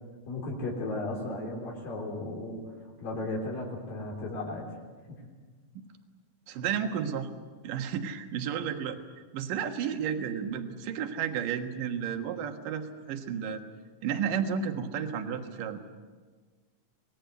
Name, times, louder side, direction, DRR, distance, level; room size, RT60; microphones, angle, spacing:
voice 1, 0.3-2.6 3.0-4.7 5.1-5.2, left 2 dB, 80° left, -2 dB, 5.3 m, -35 dB
voice 2, 6.5-7.3 7.6-9.0 9.3-13.6 14.0-15.8, right 7 dB, 75° right, 5 dB, 3.1 m, -32 dB
25.5 x 20.0 x 8.1 m, 1.4 s
omnidirectional pair, 4.0 m